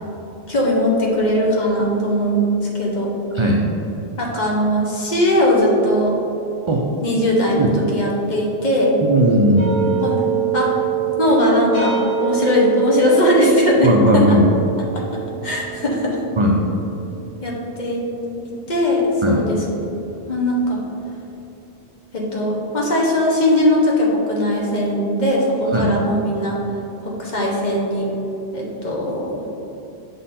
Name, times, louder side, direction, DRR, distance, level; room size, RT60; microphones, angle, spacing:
voice 1, 0.5-2.4 2.7-3.1 4.2-6.2 7.0-9.0 10.0-10.8 11.2-11.9 12.2-13.9 14.1-14.4 14.9-15.0 15.4-16.2 17.4-18.1 18.4-19.9 20.3-20.8 22.1-26.6 27.0-28.1 28.5-29.4, left 1 dB, 45° left, -3 dB, 1.1 m, -19 dB
voice 2, 3.3-3.6 6.7-6.8 7.6-7.7 9.0-9.9 13.8-14.4 16.4-16.6 19.2-19.4 25.7-25.9, right 1 dB, 50° right, -1 dB, 0.3 m, -17 dB
sound 1, 9.6-18.7, right 9 dB, 65° left, 1.8 m, -25 dB
6.0 x 3.9 x 4.2 m, 2.9 s
omnidirectional pair, 1.1 m